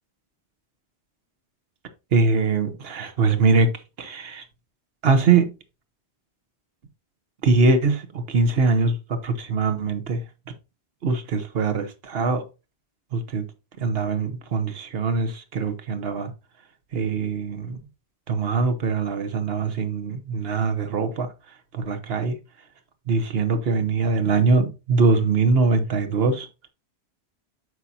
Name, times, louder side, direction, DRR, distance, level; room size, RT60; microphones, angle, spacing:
voice 1, 2.1-3.7 4.0-4.4 5.0-5.5 7.4-10.2 11.0-12.4 13.1-13.4 13.8-16.3 16.9-17.8 18.3-21.3 21.7-22.4 23.1-26.5, right 4 dB, 60° right, 1.2 m, -22 dB
9.4 x 5.7 x 2.8 m
omnidirectional pair, 1.1 m